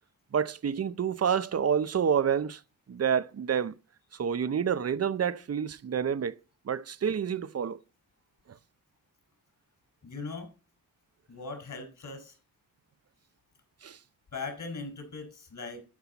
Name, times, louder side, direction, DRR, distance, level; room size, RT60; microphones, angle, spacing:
voice 1, 0.3-2.6 2.9-3.7 4.1-6.4 6.7-7.8 13.8-14.0, right 7 dB, 45° right, 0.8 m, -28 dB
voice 2, 10.0-10.5 11.3-12.4 14.3-15.8, left 4 dB, 55° left, 5.6 m, -39 dB
12.5 x 5.5 x 4.1 m
cardioid pair, 60°, 35 cm